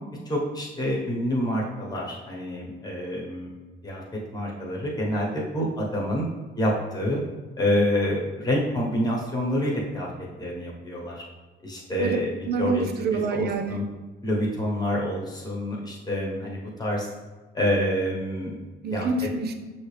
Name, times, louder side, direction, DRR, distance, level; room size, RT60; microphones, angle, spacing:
voice 1, 0.3-3.5 3.8-4.0 4.3-6.2 6.6-7.2 7.6-10.1 10.4-11.2 11.6-12.3 12.6-12.9 13.3-13.8 14.2-17.1 17.5-18.6 18.9-19.1, equal, 20° left, -3 dB, 1.1 m, -27 dB
voice 2, 12.5-13.8 18.8-19.5, right 4 dB, 55° right, 6 dB, 0.5 m, -26 dB
5.6 x 2.8 x 3.3 m, 1.3 s
cardioid pair, 90°, 20 cm